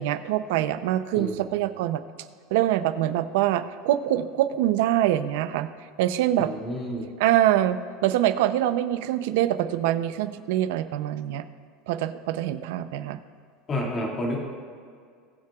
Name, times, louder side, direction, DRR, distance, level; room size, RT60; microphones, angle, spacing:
voice 1, 0.0-2.0 2.5-5.7 6.0-6.5 7.2-11.4 11.9-13.2, right 12 dB, 70° right, 11 dB, 0.6 m, -24 dB
voice 2, 1.2-1.6 6.4-7.1 13.7-14.4, left 1 dB, 25° left, -2 dB, 2.2 m, -30 dB
21.0 x 7.5 x 2.4 m, 2.1 s
supercardioid pair, 155°, 0 cm